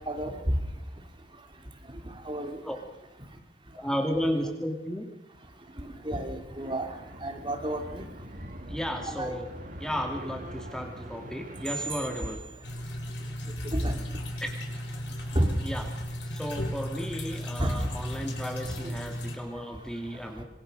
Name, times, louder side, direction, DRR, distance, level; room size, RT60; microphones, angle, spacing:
voice 1, 2.3-2.6 6.1-6.8 7.2-8.1 9.2-9.3 13.7-13.9 15.3-15.5 17.6-17.7, right 1 dB, 25° right, 4 dB, 3.2 m, -29 dB
voice 2, 3.7-5.0 8.7-9.5 9.8-12.4 14.4-14.5 15.6-16.0 16.3-20.4, equal, 5° left, 3 dB, 2.3 m, -33 dB
sound 1, 6.6-12.4, right 1 dB, 45° right, 2.1 m, -43 dB
sound 2, 12.6-19.4, equal, 75° left, 4.8 m, -36 dB
26.5 x 23.0 x 6.6 m, 0.94 s
head